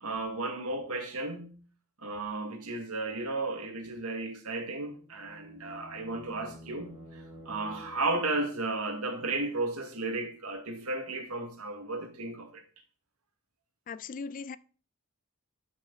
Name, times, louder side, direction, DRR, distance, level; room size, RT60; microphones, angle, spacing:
voice 1, 0.0-1.6 2.0-12.6, right 2 dB, 75° right, 2.0 m, -34 dB
sound 1, 4.6-8.5, equal, 25° right, 2.2 m, -50 dB
voice 2, 13.9-14.6, left 5 dB, 40° left, 0.4 m, -38 dB
12.5 x 6.2 x 4.0 m
head